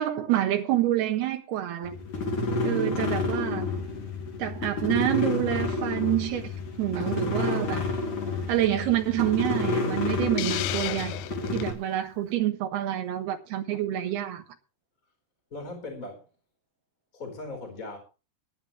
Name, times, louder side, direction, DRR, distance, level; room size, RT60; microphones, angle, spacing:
voice 1, 0.0-2.0 2.6-3.7 4.4-6.4 6.8-7.9 8.5-11.2 11.5-14.4, right 13 dB, 85° right, 3.3 m, -27 dB
sound 1, 1.8-11.7, left 3 dB, 55° left, 4.5 m, -30 dB
Hiss, 10.4-11.7, left 16 dB, 90° left, 2.8 m, -33 dB
voice 2, 15.5-16.3 17.1-18.0, left 2 dB, 20° left, 4.6 m, -38 dB
19.5 x 11.0 x 3.2 m
omnidirectional pair, 4.6 m